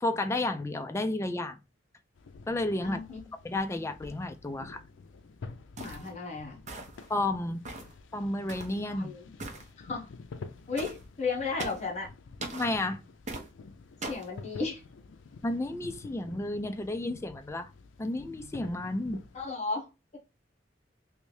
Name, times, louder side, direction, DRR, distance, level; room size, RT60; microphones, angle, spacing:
voice 1, 0.0-1.6 2.5-3.0 3.4-4.8 7.1-7.6 8.1-9.1 12.5-13.0 15.4-17.7 18.0-19.2, left 2 dB, 15° left, 0.3 m, -31 dB
sound 1, 2.2-19.5, left 4 dB, 85° left, 0.4 m, -49 dB
voice 2, 2.8-3.2 5.8-6.6 8.9-9.3 9.8-10.1 10.7-12.1 14.1-14.8 19.3-19.9, left 4 dB, 40° left, 1.1 m, -34 dB
sound 2, 5.8-6.1 6.7-7.1 7.7-8.0 8.5-8.8 9.4-9.7 10.8-11.0 11.6-11.9 12.4-12.7 13.3-13.5 14.0-14.3, right 2 dB, 40° right, 0.7 m, -40 dB
3.3 x 2.6 x 3.2 m
head